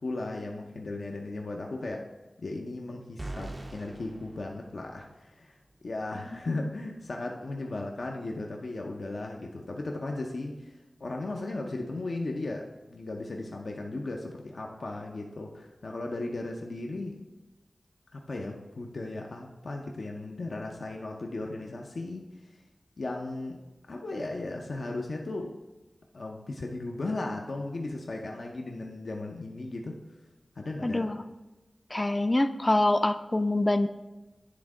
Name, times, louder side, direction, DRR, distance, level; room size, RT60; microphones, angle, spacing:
voice 1, 0.0-2.1 2.4-5.5 5.8-17.2 18.1-22.3 23.0-23.6 23.9-25.5 26.1-29.9 30.6-31.1, left 2 dB, 75° left, 1 dB, 0.6 m, -36 dB
sound 1, 3.2-5.3, right 2 dB, 35° right, 0.4 m, -42 dB
voice 2, 30.8-31.2 31.9-33.9, left 1 dB, 30° left, 9 dB, 0.4 m, -25 dB
9.7 x 3.6 x 4.8 m, 1.1 s
wide cardioid pair, 50°, 0 cm